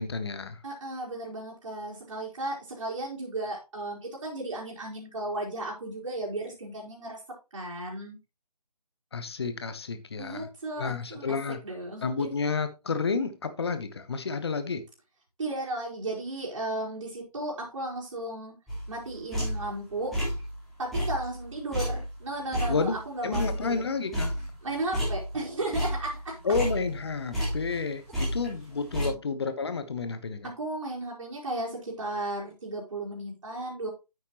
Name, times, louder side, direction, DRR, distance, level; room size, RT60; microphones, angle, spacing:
voice 1, 0.0-0.6 9.1-10.5 10.8-11.6 12.0-14.8 22.7-23.0 23.2-24.4 26.4-30.5, left 4 dB, 40° left, 1.2 m, -30 dB
voice 2, 0.6-7.2 7.5-8.2 10.2-11.4 11.6-12.3 15.4-18.6 18.9-20.2 20.8-23.8 24.6-26.4 28.9-29.2 30.4-33.9, right 2 dB, 50° right, 4.3 m, -35 dB
sound 1, 18.7-19.8 20.1-20.6 20.9-23.8 24.1-25.4 25.7-27.8 28.1-29.1, equal, ahead, 3.7 m, -31 dB
9.7 x 8.3 x 3.0 m
figure-of-eight pair, 150°, 20 cm